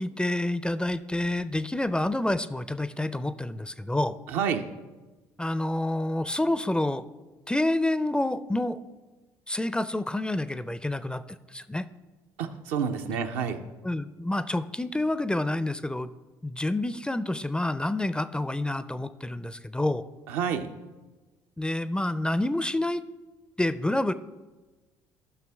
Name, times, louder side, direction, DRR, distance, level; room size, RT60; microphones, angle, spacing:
voice 1, 0.0-4.2 5.4-7.0 7.5-8.8 9.5-11.2 11.5-11.9 13.8-16.1 16.4-20.0 21.6-23.1 23.6-24.1, left 1 dB, 10° left, 14 dB, 0.4 m, -28 dB
voice 2, 4.3-4.7 12.4-13.6 20.3-20.7, right 7 dB, 75° right, 5 dB, 0.6 m, -29 dB
12.5 x 5.9 x 3.4 m, 1.2 s
hypercardioid pair, 60°, 10 cm